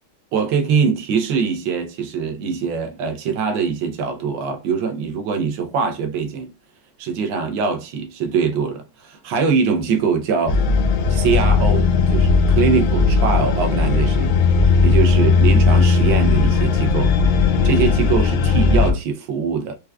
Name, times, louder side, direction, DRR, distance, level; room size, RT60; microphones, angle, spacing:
voice 1, 0.3-6.5 7.0-10.6 11.1-14.3 14.8-17.1 17.6-19.7, right 5 dB, 80° right, 1.4 m, -22 dB
sound 1, 10.5-18.9, left 4 dB, 70° left, 1.1 m, -16 dB
4.7 x 2.3 x 2.2 m
omnidirectional pair, 2.1 m